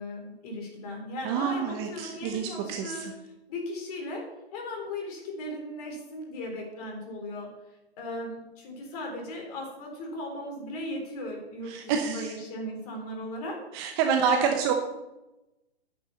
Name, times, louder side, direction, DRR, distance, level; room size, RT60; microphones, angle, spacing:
voice 1, 0.0-3.0 3.5-4.3 4.5-7.5 8.0-14.5, left 1 dB, 35° left, 1 dB, 3.7 m, -37 dB
voice 2, 1.2-3.1 11.7-12.4 13.7-14.7, right 7 dB, 25° right, 4 dB, 0.9 m, -28 dB
9.1 x 6.6 x 7.1 m, 0.98 s
hypercardioid pair, 140°, 32 cm